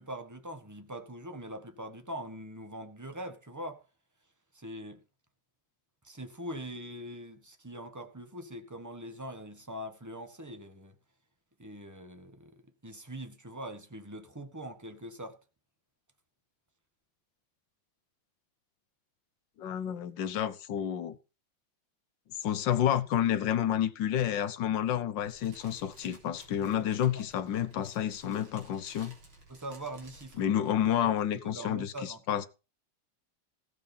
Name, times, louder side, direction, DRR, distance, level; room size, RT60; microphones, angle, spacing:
voice 1, 0.0-3.8 4.5-5.0 6.0-11.0 11.6-15.4 26.6-26.8 27.1-27.2 29.5-30.5 31.0-31.1 31.4-32.4, right 1 dB, 10° right, 1.2 m, -42 dB
voice 2, 19.6-21.2 22.4-29.2 30.4-32.5, left 10 dB, 65° left, 1.5 m, -30 dB
Fire, 25.2-30.4, right 2 dB, 80° right, 4.3 m, -56 dB
15.5 x 7.2 x 5.5 m
omnidirectional pair, 2.2 m